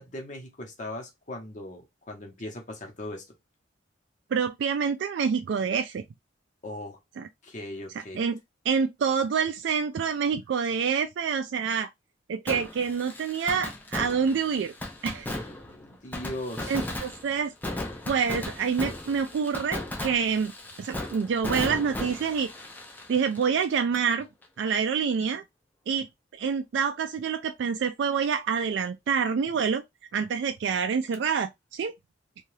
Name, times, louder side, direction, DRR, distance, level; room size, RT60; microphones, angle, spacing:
voice 1, 0.0-3.3 6.6-7.0 7.4-8.2 15.5-16.7, left 1 dB, 40° left, 0.8 m, -39 dB
voice 2, 4.3-6.0 7.2-7.3 8.1-8.4 8.7-11.9 12.3-14.7 15.0-15.3 16.7-17.5 18.1-20.5 20.8-22.5 23.1-24.3 24.6-25.4 25.9-26.1 26.3-29.8 30.1-31.9, right 6 dB, 65° right, 0.3 m, -27 dB
Fireworks, 12.5-24.1 24.4-24.5 31.1-31.2, left 1 dB, 10° left, 0.4 m, -36 dB
2.7 x 2.3 x 3.1 m
head